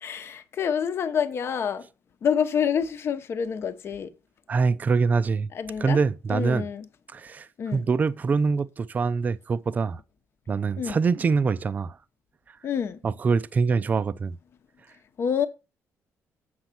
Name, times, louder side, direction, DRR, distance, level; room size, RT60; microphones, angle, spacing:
voice 1, 0.0-1.9 2.2-4.1 5.5-6.0 6.3-6.9 7.6-7.8 10.8-11.0 12.6-13.0 15.2-15.5, left 7 dB, 45° left, 0.9 m, -27 dB
voice 2, 4.5-5.5 5.8-6.7 7.1-10.0 10.5-12.0 13.0-14.4, right 5 dB, 30° right, 0.5 m, -24 dB
7.8 x 6.2 x 5.8 m
cardioid pair, 145°, 6 cm